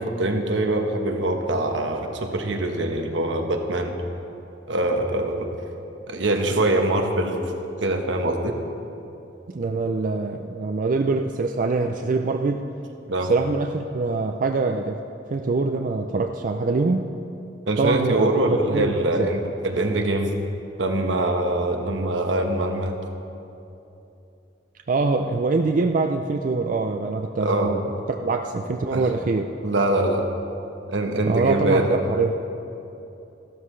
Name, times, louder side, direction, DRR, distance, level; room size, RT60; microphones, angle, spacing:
voice 1, 0.0-3.9 4.7-5.6 6.1-7.5 7.8-8.6 13.1-13.3 17.7-20.3 20.8-23.0 27.4-27.7 28.9-29.1 29.6-30.2 30.9-32.0, right 1 dB, 80° right, 4 dB, 1.1 m, -23 dB
voice 2, 9.5-12.6 13.3-15.0 15.3-17.0 17.8-19.3 24.9-27.8 28.1-29.5 31.3-32.3, right 3 dB, 45° right, 4 dB, 0.4 m, -24 dB
14.5 x 12.5 x 3.2 m, 2.8 s
head